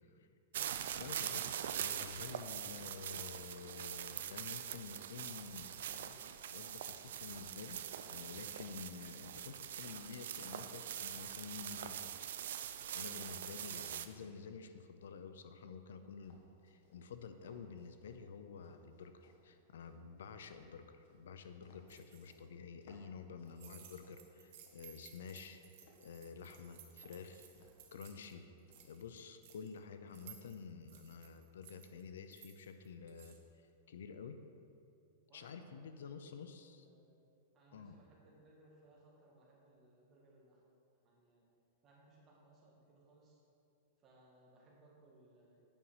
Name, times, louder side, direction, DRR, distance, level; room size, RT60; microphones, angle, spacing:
sound 1, 0.5-14.1, right 10 dB, 70° right, 0.4 m, -43 dB
voice 1, 0.9-7.8 8.1-12.1 12.9-25.6 26.0-27.5 27.9-28.5 28.8-34.4 35.3-36.9 37.7-38.0, left 6 dB, 85° left, 9 dB, 0.6 m, -50 dB
sound 2, 16.2-18.2 18.6-22.4 22.8-24.8 25.2-26.1 26.4-26.7 27.0-27.1 27.5-27.9 28.1-28.9, left 3 dB, 55° left, 1.4 m, -67 dB
sound 3, 21.9-22.3 23.5-28.3 28.6-29.8 30.1-33.4, right 9 dB, 50° right, 1.0 m, -59 dB
voice 2, 35.3-35.8 36.2-36.3 36.8-37.2 37.5-40.6 41.0-41.4 41.8-43.4 44.0-45.6, right 2 dB, 25° right, -3 dB, 1.7 m, -65 dB
8.8 x 5.4 x 4.9 m, 2.6 s
supercardioid pair, 160°, 0 cm